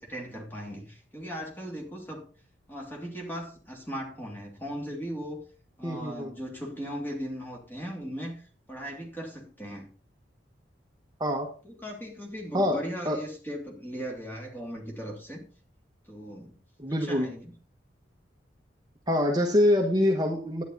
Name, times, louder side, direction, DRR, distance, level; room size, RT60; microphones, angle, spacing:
voice 1, 0.0-2.2 2.7-5.4 5.8-8.4 8.7-9.9 11.6-15.4 16.1-16.5 17.0-17.5, equal, 10° left, 0 dB, 2.9 m, -38 dB
voice 2, 5.8-6.3 11.2-11.5 12.5-12.8 13.0-13.2 16.8-17.3 19.1-20.6, left 1 dB, 20° right, 2 dB, 1.2 m, -25 dB
11.0 x 9.6 x 4.1 m, 0.37 s
head